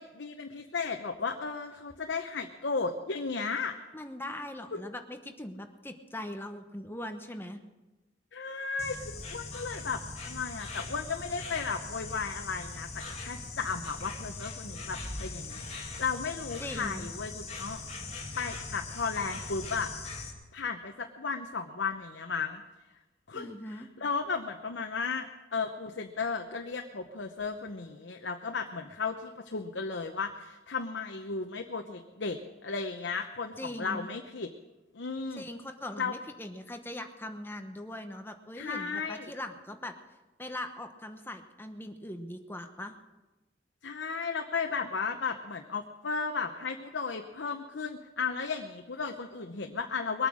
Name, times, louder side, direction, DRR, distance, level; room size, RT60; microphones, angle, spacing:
voice 1, 0.0-3.7 4.7-4.8 8.3-17.8 18.4-19.9 20.5-22.6 23.3-34.5 34.9-35.5 36.0-36.1 38.6-39.3 43.8-50.3, left 5 dB, 70° left, 4 dB, 0.9 m, -35 dB
voice 2, 3.9-7.6 16.6-17.1 23.3-23.9 33.6-34.1 35.4-39.9 40.4-42.9, left 1 dB, 10° left, 6 dB, 1.0 m, -41 dB
Insect, 8.8-20.3, left 3 dB, 35° left, 2.2 m, -41 dB
22.0 x 9.0 x 6.3 m, 1.1 s
head